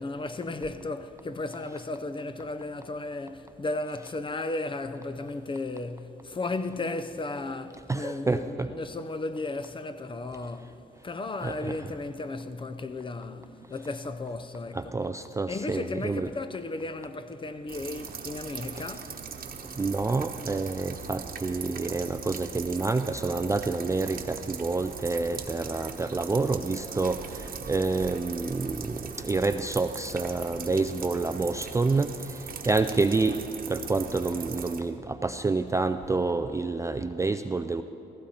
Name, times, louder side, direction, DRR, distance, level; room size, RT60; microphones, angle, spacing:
voice 1, 0.0-10.8 11.0-14.9 15.5-19.2 30.7-30.9, left 2 dB, 25° left, 0.6 m, -35 dB
voice 2, 7.9-8.7 11.4-11.8 14.7-16.3 19.8-32.1 32.6-33.4 33.7-37.8, right 3 dB, 15° right, 0.4 m, -28 dB
sound 1, 17.7-34.8, right 6 dB, 45° right, 1.1 m, -40 dB
15.0 x 15.0 x 4.3 m
cardioid pair, 90°, 20 cm